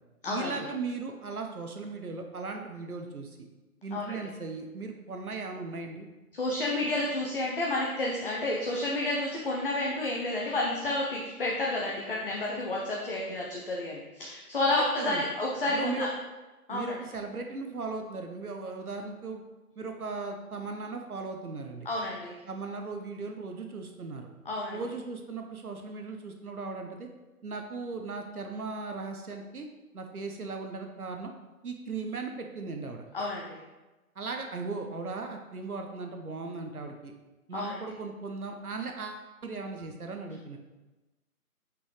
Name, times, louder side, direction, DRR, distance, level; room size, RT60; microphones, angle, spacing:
voice 1, 0.3-3.5 3.8-6.1 14.7-15.3 15.7-16.1 16.7-19.4 19.8-21.9 22.5-24.3 24.7-27.1 27.4-29.7 29.9-31.3 31.6-33.0 34.2-37.1 37.5-40.6, right 4 dB, 70° right, 4 dB, 0.9 m, -37 dB
voice 2, 6.3-16.1 16.7-16.9 21.8-22.3 24.4-24.8 33.1-33.6 37.5-37.8, left 2 dB, 35° left, -3 dB, 0.7 m, -30 dB
5.8 x 5.4 x 3.2 m, 1.1 s
figure-of-eight pair, 145°, 45 cm